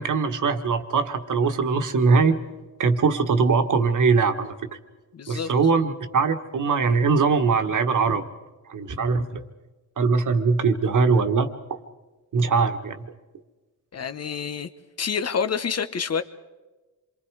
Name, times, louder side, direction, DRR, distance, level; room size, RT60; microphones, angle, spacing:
voice 1, 0.0-2.4 2.8-4.5 5.3-8.3 8.7-9.5 10.0-11.5 12.3-13.1, right 4 dB, 55° right, 7 dB, 1.7 m, -21 dB
voice 2, 5.1-5.5 13.9-14.7 15.0-16.2, left 6 dB, 40° left, 11 dB, 1.2 m, -27 dB
27.0 x 23.5 x 4.9 m, 1.2 s
cardioid pair, 75°, 38 cm